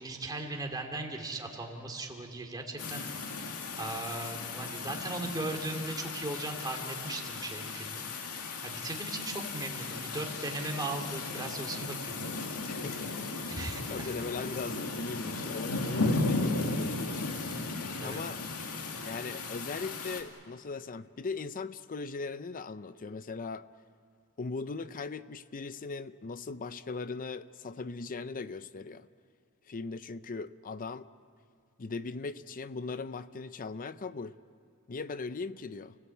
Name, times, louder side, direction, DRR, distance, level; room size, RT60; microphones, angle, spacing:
voice 1, 0.0-3.3 3.8-8.1 8.6-12.4 12.6-12.7 13.5-14.1 18.0-18.2, right 2 dB, 20° right, 2 dB, 2.7 m, -38 dB
sound 1, 2.8-20.2, left 3 dB, 80° left, 2.2 m, -36 dB
voice 2, 12.7-13.3 13.9-17.5 18.0-18.4 19.0-23.7 24.4-29.1 29.7-31.1 31.8-34.4 34.9-36.0, left 4 dB, 40° left, 14 dB, 0.5 m, -39 dB
30.0 x 17.5 x 8.4 m, 2.4 s
head